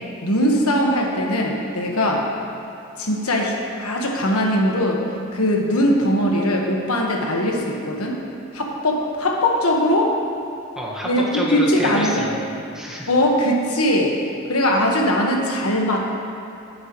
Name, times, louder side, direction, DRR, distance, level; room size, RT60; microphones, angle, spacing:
voice 1, 0.2-2.3 3.0-5.0 5.3-8.2 8.5-10.2 11.0-12.3 13.1-14.2 14.5-16.0, left 1 dB, 85° left, 0 dB, 1.4 m, -20 dB
voice 2, 10.7-13.1, equal, 5° right, -5 dB, 1.5 m, -28 dB
18.0 x 7.9 x 3.1 m, 2.9 s
head